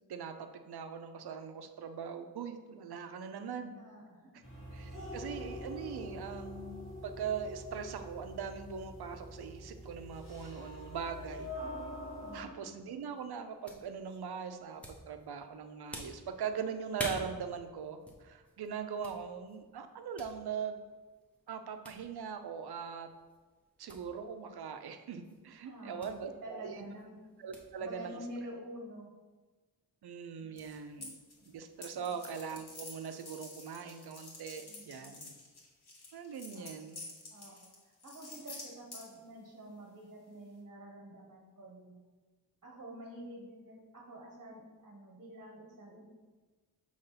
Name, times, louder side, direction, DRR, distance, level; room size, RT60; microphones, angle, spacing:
voice 1, 0.1-3.8 4.7-11.5 12.3-20.8 21.5-23.1 23.8-26.9 27.4-28.2 30.0-31.2 31.5-35.3 36.1-37.0, right 6 dB, 90° right, 7 dB, 0.6 m, -41 dB
voice 2, 3.8-4.3 12.2-12.7 25.6-27.2 27.8-29.1 30.9-31.1 32.0-32.1 34.7-35.2 36.5-36.7 37.3-42.0 42.6-46.0, right 1 dB, 40° right, -1 dB, 1.1 m, -48 dB
sound 1, 4.4-12.4, left 1 dB, 35° left, 1.7 m, -45 dB
sound 2, 12.9-28.5, equal, 5° left, 0.9 m, -50 dB
sound 3, 30.6-31.5 31.8-39.2, left 3 dB, 85° left, 1.5 m, -49 dB
6.7 x 3.2 x 5.6 m, 1.3 s
wide cardioid pair, 155°, 38 cm